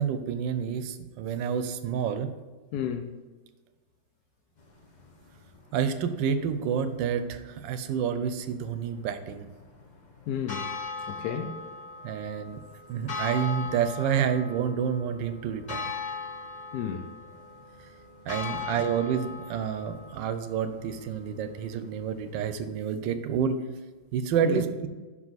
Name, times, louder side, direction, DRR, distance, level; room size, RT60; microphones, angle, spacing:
voice 1, 0.0-2.3 5.7-9.5 12.0-12.6 12.9-15.9 18.3-23.6 24.1-24.9, right 7 dB, 80° right, 1.3 m, -29 dB
voice 2, 2.7-3.2 10.3-10.7 11.1-11.6 16.7-17.1 24.4-24.6, left 8 dB, 70° left, 1.0 m, -32 dB
sound 1, 4.6-22.7, left 4 dB, 45° left, 0.5 m, -41 dB
5.7 x 4.9 x 4.0 m
omnidirectional pair, 1.9 m